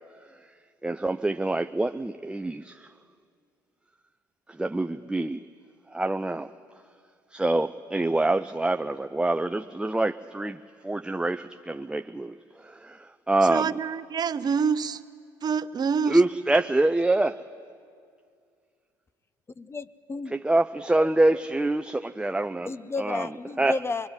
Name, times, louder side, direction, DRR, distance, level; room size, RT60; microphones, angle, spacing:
voice 1, 0.8-2.9 4.6-5.4 5.9-6.5 7.3-12.3 12.6-13.7 16.1-17.4 20.3-23.8, right 2 dB, 10° right, 0.6 m, -26 dB
voice 2, 13.5-15.0 15.4-16.2, right 6 dB, 40° right, 0.8 m, -26 dB
voice 3, 19.6-20.3 22.7-24.1, left 3 dB, 25° left, 0.8 m, -32 dB
24.0 x 23.0 x 9.7 m
hypercardioid pair, 60°, 10 cm